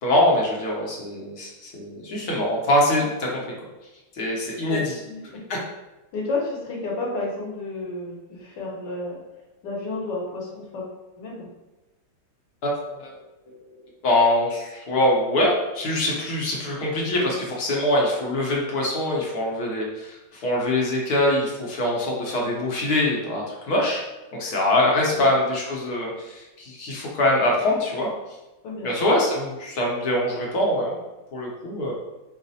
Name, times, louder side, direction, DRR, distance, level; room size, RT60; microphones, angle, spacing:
voice 1, 0.0-3.4 4.1-4.9 5.5-5.6 12.6-13.2 14.0-24.0 24.3-28.1 28.8-31.0 31.3-31.9, left 1 dB, 65° left, -3 dB, 1.2 m, -23 dB
voice 2, 4.7-5.4 6.1-9.2 9.6-10.9 11.2-11.5 25.1-25.2 28.6-29.2, left 2 dB, 80° left, -2 dB, 1.5 m, -31 dB
4.7 x 2.1 x 2.7 m, 1.1 s
omnidirectional pair, 1.9 m